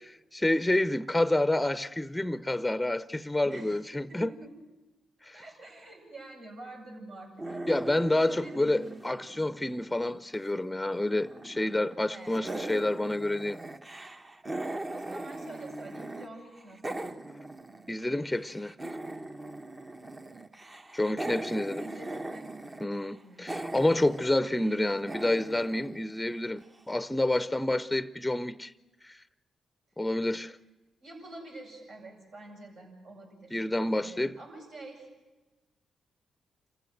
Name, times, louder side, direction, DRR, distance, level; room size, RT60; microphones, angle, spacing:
voice 1, 0.3-4.3 5.2-5.4 7.7-13.6 17.9-18.7 20.9-21.9 22.8-28.7 29.0-29.2 30.0-30.6 33.5-34.4, left 1 dB, 10° left, 0.7 m, -28 dB
voice 2, 3.4-3.8 4.1-4.6 5.3-7.8 8.2-8.9 12.1-12.6 14.9-17.0 21.8-22.5 23.2-23.7 31.0-33.6 33.9-35.1, right 2 dB, 75° right, 7.5 m, -46 dB
sound 1, 7.4-10.5 10.8-12.0 12.3-16.3 16.5-26.6, right 2 dB, 30° right, 1.2 m, -40 dB
27.0 x 15.0 x 7.8 m
hypercardioid pair, 40°, 0 cm